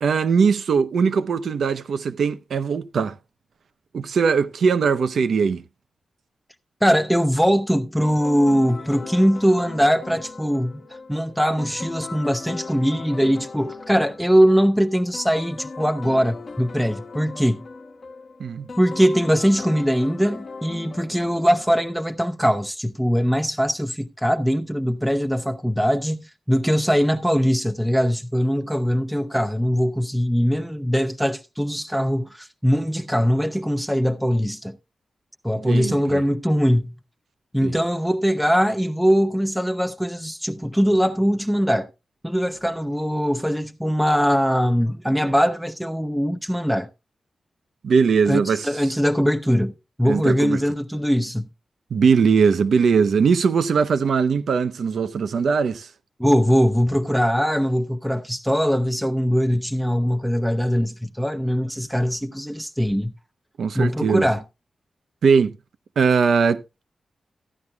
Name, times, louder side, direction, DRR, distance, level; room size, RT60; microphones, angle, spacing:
voice 1, 0.0-3.2 3.9-5.6 18.4-18.7 35.6-36.2 37.6-37.8 47.8-48.7 50.0-50.6 51.9-55.9 63.6-64.3 65.2-65.6 66.0-66.8, right 5 dB, 75° right, 0.6 m, -20 dB
voice 2, 6.8-17.6 18.8-34.8 35.4-36.9 37.5-41.9 42.2-46.9 48.3-51.5 56.2-63.1 63.8-64.4, equal, ahead, 0.4 m, -21 dB
sound 1, 8.0-22.2, left 4 dB, 50° left, 1.0 m, -38 dB
14.5 x 10.5 x 2.3 m
wide cardioid pair, 155°, 0 cm